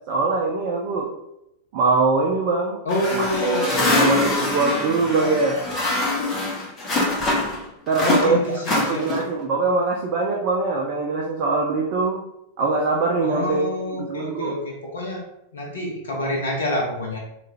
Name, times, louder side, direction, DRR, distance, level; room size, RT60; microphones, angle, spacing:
voice 1, 0.1-1.1 1.7-2.8 3.1-5.6 7.9-8.4 8.7-12.2 12.6-13.7 14.0-14.6, right 3 dB, 45° right, -1 dB, 0.5 m, -22 dB
voice 2, 2.8-4.7 8.0-9.2 13.2-15.2 15.5-17.2, left 1 dB, 65° left, -2 dB, 0.5 m, -27 dB
sound 1, 2.9-7.6 7.9-9.4, left 2 dB, 25° left, 1.0 m, -24 dB
3.1 x 2.3 x 3.3 m, 0.84 s
figure-of-eight pair, 90°, 0 cm